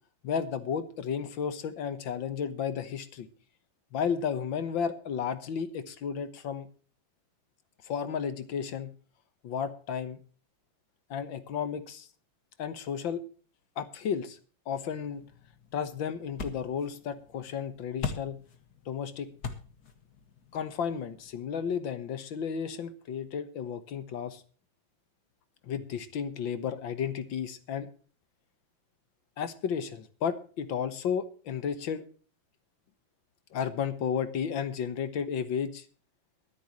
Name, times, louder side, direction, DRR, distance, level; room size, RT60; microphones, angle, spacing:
voice 1, 0.2-3.3 3.9-6.7 7.8-8.9 9.4-10.2 11.1-12.1 12.6-13.2 13.8-14.4 14.7-15.2 15.7-18.4 18.9-19.3 20.5-24.4 25.6-27.9 29.4-32.0 33.5-35.9, left 7 dB, 65° left, 11 dB, 1.9 m, -33 dB
sound 1, 14.7-21.8, left 5 dB, 50° left, 2.1 m, -43 dB
23.5 x 8.1 x 3.1 m, 0.39 s
omnidirectional pair, 2.3 m